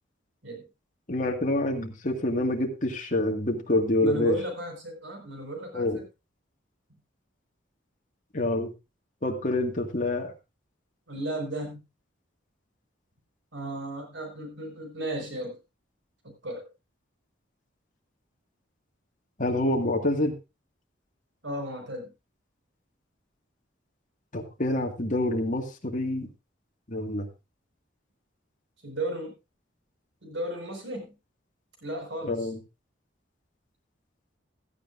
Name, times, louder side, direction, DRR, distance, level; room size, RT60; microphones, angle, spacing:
voice 1, 1.1-4.4 5.7-6.0 8.3-8.7 9.2-10.3 19.4-20.3 24.3-26.3 26.9-27.3 32.2-32.6, left 1 dB, 40° left, 2 dB, 2.1 m, -27 dB
voice 2, 4.0-6.0 11.1-11.9 13.5-15.6 16.4-16.7 21.4-22.1 28.8-29.3 30.2-31.1 31.8-32.5, right 1 dB, 75° right, 4 dB, 5.3 m, -34 dB
16.0 x 12.5 x 2.6 m, 0.26 s
head